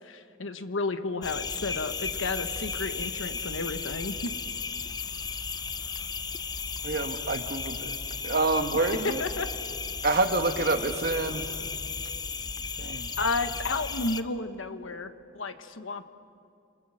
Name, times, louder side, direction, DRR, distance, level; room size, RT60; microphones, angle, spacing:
voice 1, 0.0-4.3 9.0-9.7 13.2-16.1, left 3 dB, 75° left, 9 dB, 1.3 m, -32 dB
sound 1, 1.2-14.2, left 5 dB, 20° left, 0.6 m, -35 dB
voice 2, 6.8-8.0 8.2-9.2 10.0-11.6 12.8-13.1, right 3 dB, 50° right, 7 dB, 1.4 m, -27 dB
28.5 x 26.5 x 6.5 m, 2.5 s
head